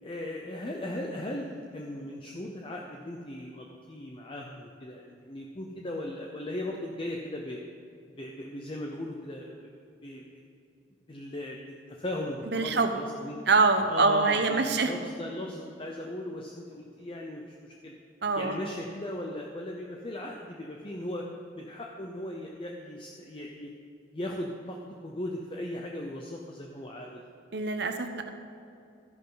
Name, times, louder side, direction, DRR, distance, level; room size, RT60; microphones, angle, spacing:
voice 1, 0.0-7.6 8.2-9.6 10.0-10.2 11.1-13.4 13.9-17.9 18.4-21.3 21.6-23.7 24.1-27.2, left 1 dB, 30° left, 0 dB, 0.7 m, -38 dB
voice 2, 12.5-12.9 13.5-14.9 18.2-18.6 27.5-28.3, right 4 dB, 60° right, 7 dB, 0.9 m, -24 dB
13.5 x 11.0 x 3.9 m, 2.6 s
head